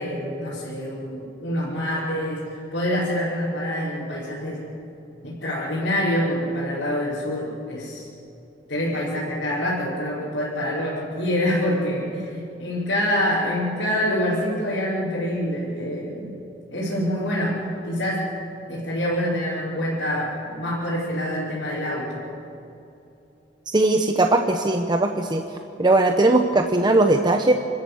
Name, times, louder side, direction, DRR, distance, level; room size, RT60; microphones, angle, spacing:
voice 1, 0.0-4.6 5.2-8.1 8.7-16.4 16.7-18.3 18.7-22.2, equal, 85° left, -10 dB, 5.2 m, -26 dB
voice 2, 23.7-25.4 25.8-27.5, right 2 dB, 25° right, 4 dB, 0.9 m, -19 dB
26.5 x 13.5 x 8.4 m, 2.8 s
head